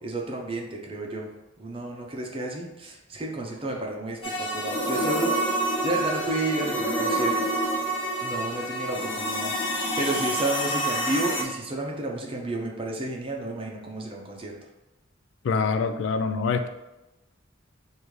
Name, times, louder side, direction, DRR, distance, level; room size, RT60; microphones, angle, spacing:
voice 1, 0.0-1.3 1.6-7.5 8.2-14.6, right 2 dB, 30° right, 0 dB, 0.6 m, -31 dB
sound 1, 4.2-11.4, right 1 dB, 30° left, 0.9 m, -27 dB
voice 2, 15.4-16.7, left 5 dB, 70° left, 8 dB, 0.3 m, -25 dB
5.1 x 2.6 x 3.1 m, 1.0 s
head